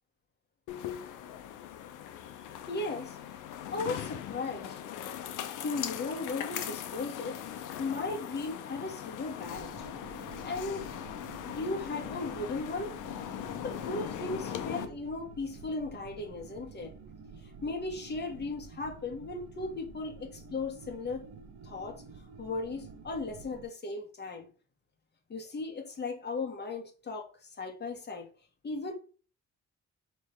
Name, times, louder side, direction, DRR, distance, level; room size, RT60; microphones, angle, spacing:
sound 1, 0.7-14.9, left 10 dB, 85° left, 0.7 m, -40 dB
voice 1, 2.7-3.2 3.7-4.8 5.6-7.4 7.8-9.7 10.4-10.9 11.6-13.0 13.6-16.9 17.4-21.3 21.6-22.0 22.4-24.5 25.3-28.3 28.6-28.9, left 3 dB, 35° left, 1.5 m, -36 dB
sound 2, 9.4-23.7, right 5 dB, 70° right, 0.8 m, -49 dB
3.5 x 3.3 x 4.6 m
cardioid pair, 90°, 30 cm